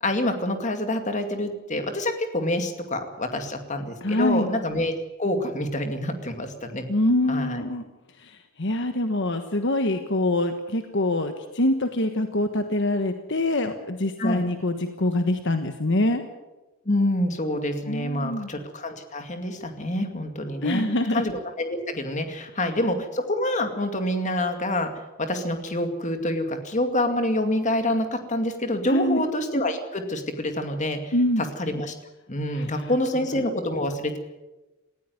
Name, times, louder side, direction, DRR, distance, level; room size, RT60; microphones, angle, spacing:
voice 1, 0.0-4.9 5.2-6.9 7.3-7.6 14.2-14.4 16.9-20.8 21.1-24.9 25.2-31.1 31.6-31.9 32.3-34.2, left 1 dB, 35° left, 6 dB, 2.3 m, -27 dB
voice 2, 4.0-4.5 6.9-7.8 8.2-16.2 17.9-18.5 20.6-21.2 28.9-29.2 31.1-31.4 32.5-32.9, left 1 dB, 55° left, 7 dB, 1.3 m, -25 dB
19.0 x 15.5 x 9.6 m, 1.1 s
head